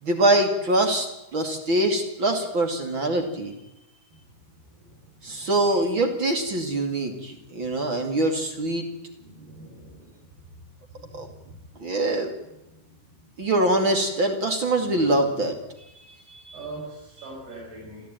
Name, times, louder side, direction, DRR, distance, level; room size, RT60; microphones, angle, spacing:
voice 1, 0.0-3.5 5.2-8.9 11.1-11.3 11.8-12.3 13.4-15.5 16.5-16.6, right 1 dB, 35° right, 4 dB, 2.8 m, -24 dB
voice 2, 9.2-10.1 11.0-11.1 16.5-18.0, right 2 dB, 90° right, -3 dB, 8.5 m, -41 dB
29.0 x 13.5 x 9.2 m, 0.96 s
omnidirectional pair, 4.5 m